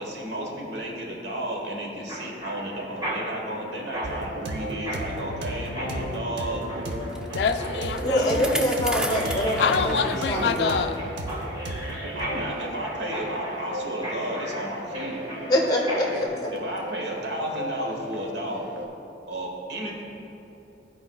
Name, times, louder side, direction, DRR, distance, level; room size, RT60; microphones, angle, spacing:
voice 1, 0.0-7.3 12.1-15.5 15.8-18.7 19.3-20.0, right 1 dB, 70° right, -1 dB, 1.3 m, -33 dB
Mechanisms, 2.1-16.3, equal, 25° right, 1.6 m, -37 dB
sound 1, 4.0-18.9, right 1 dB, 90° right, 0.7 m, -35 dB
Bicycle, 6.9-10.8 11.3-11.4 12.2-12.3, equal, 5° right, 0.4 m, -34 dB
voice 2, 7.3-8.6 9.6-11.0, left 6 dB, 65° left, 7 dB, 0.3 m, -26 dB
voice 3, 8.0-9.9 10.3-10.7 15.5-16.3, equal, 20° left, 0 dB, 0.8 m, -24 dB
14.0 x 4.8 x 2.3 m, 2.8 s
head